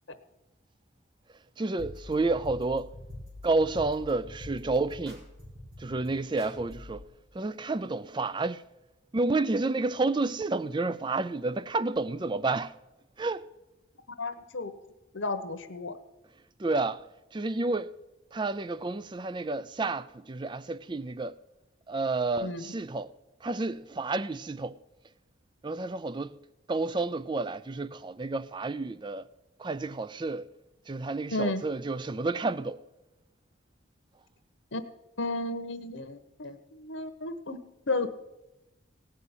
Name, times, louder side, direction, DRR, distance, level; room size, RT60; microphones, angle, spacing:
voice 1, 1.6-2.9 3.4-5.2 5.8-7.0 7.3-8.6 9.1-12.7 13.2-13.5 16.6-17.0 17.3-17.9 18.3-21.4 21.9-23.1 23.4-24.8 25.6-26.4 26.7-29.3 29.6-30.5 30.9-32.8, right 3 dB, 25° right, 0.4 m, -30 dB
sound 1, 1.8-7.0, left 1 dB, 90° right, 4.1 m, -45 dB
voice 2, 14.2-14.7 15.1-16.0 22.4-22.7 31.3-31.6 34.7-34.8 35.2-37.6 37.9-38.1, left 2 dB, 70° left, 1.0 m, -33 dB
17.0 x 5.7 x 9.7 m
head